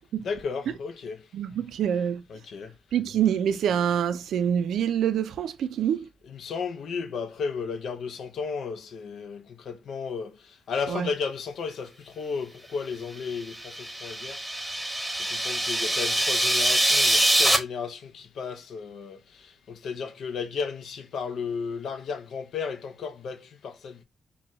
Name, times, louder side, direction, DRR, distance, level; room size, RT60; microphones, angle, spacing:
voice 1, 0.2-1.2 2.3-2.7 6.2-10.3 10.7-14.4 15.3-19.2 19.7-24.0, left 5 dB, 75° left, 0.6 m, -34 dB
voice 2, 1.3-2.2 2.9-6.1 10.9-11.1, right 9 dB, 85° right, 0.4 m, -26 dB
sound 1, 13.4-17.6, right 1 dB, 10° right, 1.0 m, -24 dB
4.0 x 2.3 x 3.0 m
cardioid pair, 85°, 0 cm